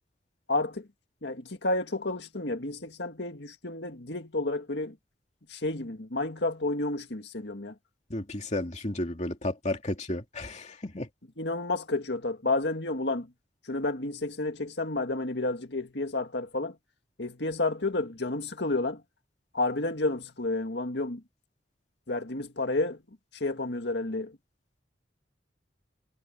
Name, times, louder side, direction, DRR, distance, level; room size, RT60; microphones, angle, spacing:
voice 1, 0.5-0.9 1.2-5.0 5.5-7.7 11.4-13.3 13.7-16.8 17.2-19.0 19.5-21.2 22.1-23.0 23.4-24.4, left 2 dB, 65° left, 2.0 m, -30 dB
voice 2, 8.1-11.1, left 1 dB, 40° left, 2.7 m, -33 dB
head